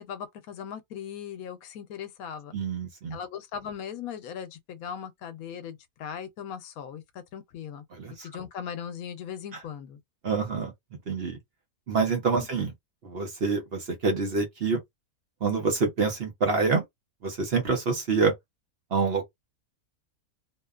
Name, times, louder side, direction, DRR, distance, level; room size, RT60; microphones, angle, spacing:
voice 1, 0.0-2.5 3.1-7.0 7.3-7.8 8.2-10.0, left 8 dB, 80° left, 1.1 m, -38 dB
voice 2, 2.5-3.2 8.0-8.3 10.2-10.7 11.1-11.4 11.9-12.7 13.0-14.8 15.4-16.8 17.2-18.3 18.9-19.2, right 4 dB, 50° right, 0.8 m, -26 dB
2.7 x 2.2 x 2.3 m
omnidirectional pair, 1.5 m